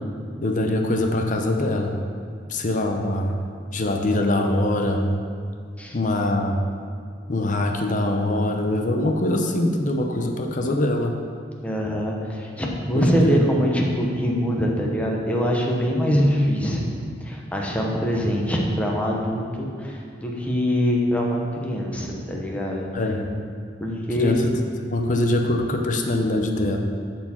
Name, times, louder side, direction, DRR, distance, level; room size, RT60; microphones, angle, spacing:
voice 1, 0.4-1.9 2.5-3.4 3.7-5.2 5.9-6.6 7.3-11.2 12.9-13.4 22.9-23.3 24.1-24.5 24.9-26.8, left 1 dB, 40° left, 3 dB, 0.7 m, -23 dB
voice 2, 11.6-16.8 17.2-22.9 23.8-24.5, equal, 5° left, -1 dB, 1.0 m, -23 dB
13.0 x 4.5 x 4.5 m, 2.2 s
head